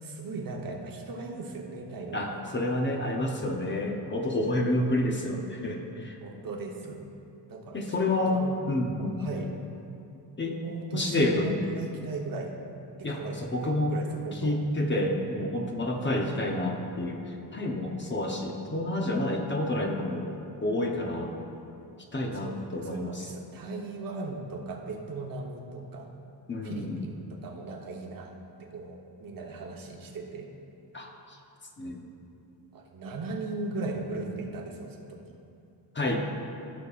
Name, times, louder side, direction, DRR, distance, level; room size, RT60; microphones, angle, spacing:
voice 1, 0.0-2.4 6.2-7.1 7.5-8.6 9.0-9.5 10.6-12.5 13.1-14.6 22.3-26.1 26.6-28.3 28.6-30.5 32.7-35.2, right 3 dB, 50° right, 1 dB, 1.1 m, -38 dB
voice 2, 2.1-6.2 7.7-8.4 8.7-9.2 10.4-10.6 10.9-11.5 13.0-14.0 14.4-20.3 20.6-21.3 22.1-23.3 26.5-27.1 30.9-31.4 31.8-32.0 35.9-36.2, left 1 dB, 25° left, 1 dB, 0.8 m, -29 dB
16.0 x 5.4 x 2.5 m, 2.7 s
cardioid pair, 125°, 43 cm